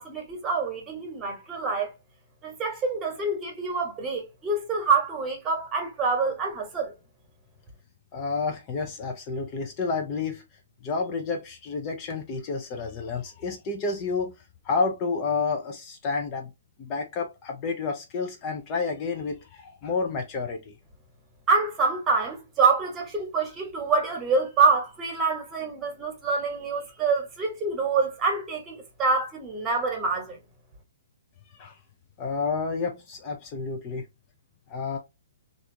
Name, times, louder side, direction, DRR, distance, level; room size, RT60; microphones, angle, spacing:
voice 1, 0.0-1.9 2.4-6.9 21.5-30.4, right 4 dB, 20° right, 1.2 m, -26 dB
voice 2, 8.1-10.4 10.8-14.3 14.6-16.5 16.8-20.7 31.6-31.8 32.2-34.0 34.7-35.0, left 4 dB, 30° left, 0.6 m, -30 dB
3.3 x 2.5 x 2.8 m
figure-of-eight pair, 120°, 0 cm